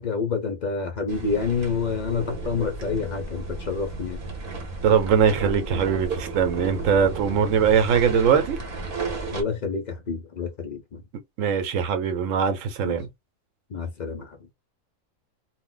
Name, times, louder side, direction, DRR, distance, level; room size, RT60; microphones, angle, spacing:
voice 1, 0.0-4.2 9.3-11.0 12.8-13.0 13.7-14.4, left 5 dB, 55° left, 0.4 m, -28 dB
sound 1, 1.1-9.4, right 3 dB, 45° right, 0.9 m, -33 dB
voice 2, 4.8-8.6 11.4-13.1, right 7 dB, 70° right, 1.0 m, -21 dB
2.4 x 2.1 x 3.7 m
omnidirectional pair, 1.4 m